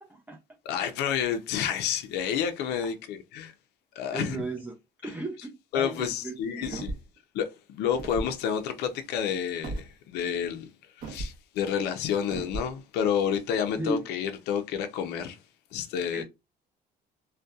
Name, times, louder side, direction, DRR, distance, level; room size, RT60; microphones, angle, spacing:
voice 1, 0.0-0.4 4.1-6.8 13.8-14.3 16.1-16.2, right 2 dB, 10° right, 0.4 m, -36 dB
voice 2, 0.7-3.5 4.0-4.4 5.0-5.1 5.7-6.9 7.3-10.7 11.0-15.4 15.7-16.2, left 8 dB, 80° left, 0.4 m, -29 dB
sound 1, 6.6-7.2 7.9-8.3 9.6-9.9 11.0-11.4 12.3-12.7, right 2 dB, 55° right, 0.6 m, -35 dB
2.6 x 2.1 x 2.3 m
cardioid pair, 110°, 17 cm